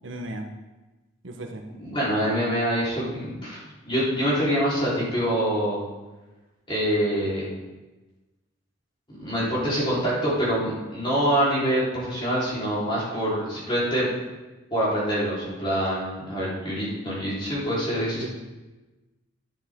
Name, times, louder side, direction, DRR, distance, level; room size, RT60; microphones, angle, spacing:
voice 1, 0.0-0.5 1.2-1.7 18.2-18.3, right 1 dB, 70° right, 3 dB, 1.1 m, -35 dB
voice 2, 1.8-5.8 6.7-7.5 9.1-14.1 14.7-18.3, equal, 25° left, -8 dB, 4.0 m, -25 dB
10.5 x 10.5 x 3.7 m, 1.1 s
head